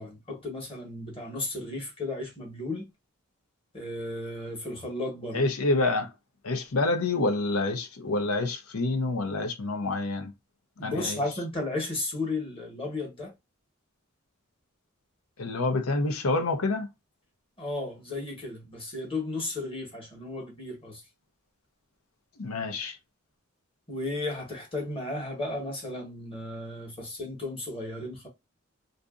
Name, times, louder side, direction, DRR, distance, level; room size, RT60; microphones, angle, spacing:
voice 1, 0.0-2.9 3.7-5.4 10.8-13.3 17.6-21.0 23.9-28.3, left 2 dB, 25° left, 1.0 m, -34 dB
voice 2, 5.3-6.1 6.4-10.3 10.8-11.2 15.4-16.9 22.4-23.0, left 2 dB, 85° left, 0.7 m, -27 dB
2.6 x 2.5 x 2.4 m
head